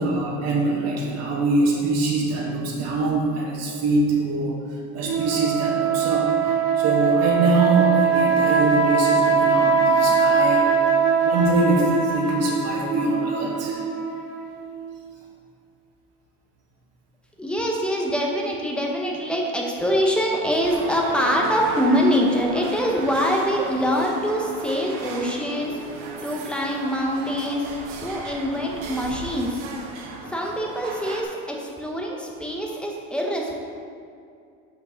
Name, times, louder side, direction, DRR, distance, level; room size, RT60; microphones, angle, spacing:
voice 1, 0.0-4.6 4.9-6.3 6.8-10.7 11.2-13.8, right 2 dB, 45° right, -2 dB, 1.7 m, -23 dB
sound 1, 5.0-14.8, right 6 dB, 60° right, 1.0 m, -21 dB
voice 2, 17.4-25.8 26.2-27.7 28.0-29.6 30.3-33.5, equal, 5° left, -1 dB, 1.0 m, -24 dB
sound 2, 20.6-31.2, right 4 dB, 85° right, 1.2 m, -35 dB
6.1 x 5.1 x 6.3 m, 2.4 s
cardioid pair, 145°, 34 cm